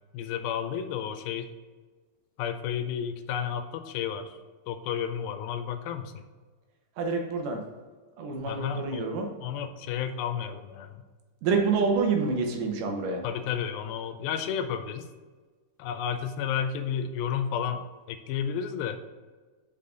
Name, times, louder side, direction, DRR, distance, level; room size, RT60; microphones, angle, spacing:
voice 1, 0.1-1.5 2.4-4.4 4.7-6.3 8.5-9.1 9.4-11.0 13.2-15.1 15.8-19.0, left 8 dB, 85° left, 7 dB, 2.4 m, -32 dB
voice 2, 7.0-7.6 8.2-9.3 11.4-13.2, right 4 dB, 70° right, 2 dB, 2.3 m, -27 dB
5.7 x 5.6 x 3.8 m, 1.4 s
omnidirectional pair, 4.1 m